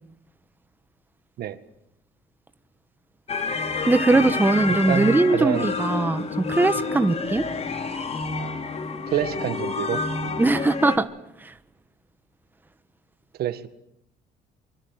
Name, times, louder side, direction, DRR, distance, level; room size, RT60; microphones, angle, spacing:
sound 1, 3.3-11.0, left 4 dB, 40° left, 3.3 m, -28 dB
voice 1, 3.9-7.4 10.4-11.1 11.4-11.5, right 2 dB, 10° right, 10 dB, 1.4 m, -20 dB
voice 2, 4.7-5.7 9.1-10.0 13.4-13.7, right 12 dB, 65° right, 11 dB, 2.0 m, -27 dB
24.5 x 24.0 x 9.2 m, 0.76 s
cardioid pair, 110°, 17 cm